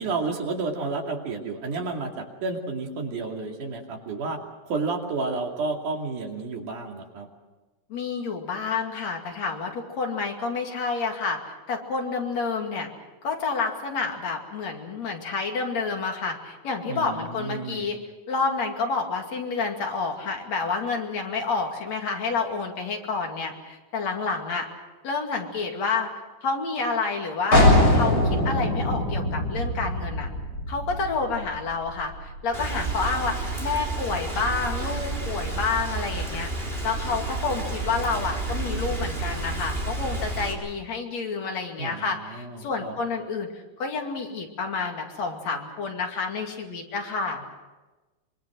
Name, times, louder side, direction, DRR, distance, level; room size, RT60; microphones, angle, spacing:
voice 1, 0.0-4.4 4.7-7.3 16.8-17.9 41.8-43.0, right 3 dB, 80° right, 2 dB, 4.1 m, -31 dB
voice 2, 7.9-11.4 11.7-12.9 13.2-18.0 18.3-24.7 25.0-26.1 26.4-30.3 30.7-36.5 36.8-47.4, left 4 dB, 60° left, 2 dB, 3.6 m, -29 dB
sound 1, 27.5-33.1, left 1 dB, 30° left, 7.2 m, -23 dB
Rain, 32.5-40.5, right 2 dB, 15° right, 4.3 m, -30 dB
25.0 x 24.5 x 6.4 m, 1.2 s
omnidirectional pair, 3.6 m